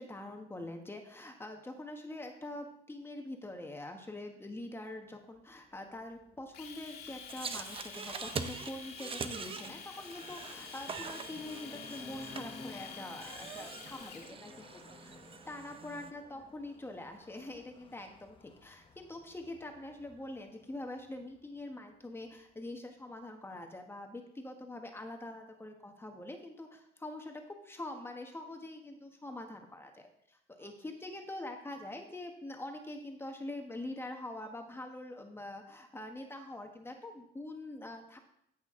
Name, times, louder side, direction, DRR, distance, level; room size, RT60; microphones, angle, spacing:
voice 1, 0.0-14.1 14.4-14.7 15.5-38.2, left 1 dB, 15° left, 4 dB, 1.2 m, -44 dB
sound 1, 5.3-22.8, left 3 dB, 30° left, 0.9 m, -56 dB
Domestic sounds home sounds, 6.5-14.3, left 7 dB, 70° left, 2.1 m, -48 dB
sound 2, 7.3-16.1, right 6 dB, 35° right, 0.7 m, -44 dB
voice 2, 13.4-15.8 30.6-31.2, right 5 dB, 60° right, 1 dB, 2.0 m, -62 dB
14.5 x 6.2 x 3.7 m, 0.75 s
cardioid pair, 110°, 17 cm